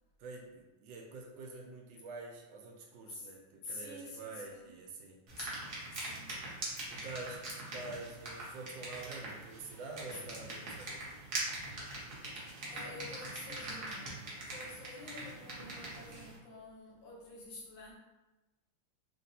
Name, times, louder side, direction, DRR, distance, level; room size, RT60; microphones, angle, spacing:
voice 1, 0.2-5.7 6.9-7.4 7.7-11.1, right 3 dB, 75° right, 1 dB, 1.2 m, -47 dB
voice 2, 3.6-4.7 5.4-5.5 5.9-6.5 10.1-10.2 12.4-14.3 14.5-17.9, left 2 dB, 75° left, -5 dB, 1.6 m, -48 dB
sound 1, 5.3-16.4, right 2 dB, 50° right, 0.9 m, -43 dB
3.3 x 2.6 x 2.7 m, 1.1 s
omnidirectional pair, 2.1 m